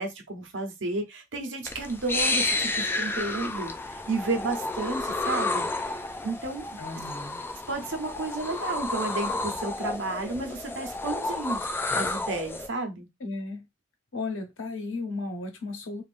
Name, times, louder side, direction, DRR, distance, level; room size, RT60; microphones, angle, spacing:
voice 1, 0.0-5.7 6.2-6.7 7.7-11.7 11.9-13.1, right 3 dB, 70° right, 0.8 m, -32 dB
sound 1, 1.6-12.7, left 2 dB, 10° left, 0.3 m, -31 dB
voice 2, 6.8-7.4 13.2-13.7 14.1-16.0, left 3 dB, 85° left, 0.9 m, -34 dB
2.6 x 2.4 x 3.4 m
head